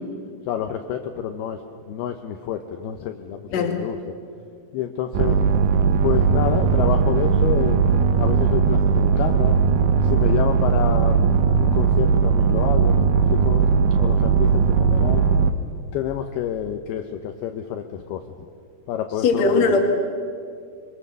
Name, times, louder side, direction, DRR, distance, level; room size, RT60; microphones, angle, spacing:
voice 1, 0.5-1.6 1.9-4.0 4.7-5.4 6.0-7.8 8.2-9.6 10.0-13.7 14.0-15.3 15.9-18.2 18.9-19.8, left 10 dB, 75° left, 5 dB, 2.6 m, -28 dB
sound 1, 5.1-15.5, right 6 dB, 75° right, 2.0 m, -18 dB
voice 2, 19.2-19.8, left 4 dB, 45° left, 3 dB, 2.8 m, -19 dB
24.0 x 23.0 x 6.8 m, 2.2 s
omnidirectional pair, 5.0 m